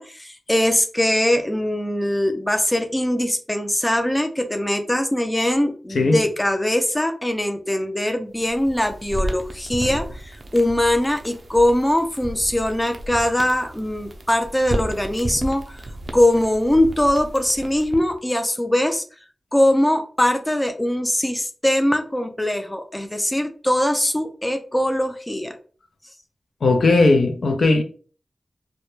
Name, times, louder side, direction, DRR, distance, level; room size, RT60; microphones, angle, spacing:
voice 1, 0.0-15.8 16.1-19.0 19.5-25.6, left 1 dB, 15° left, 0.4 m, -21 dB
sound 1, 8.4-18.2, right 1 dB, 60° right, 0.4 m, -33 dB
voice 2, 26.6-27.8, left 3 dB, 85° left, 0.4 m, -17 dB
2.2 x 2.0 x 2.9 m
wide cardioid pair, 65°, 0 cm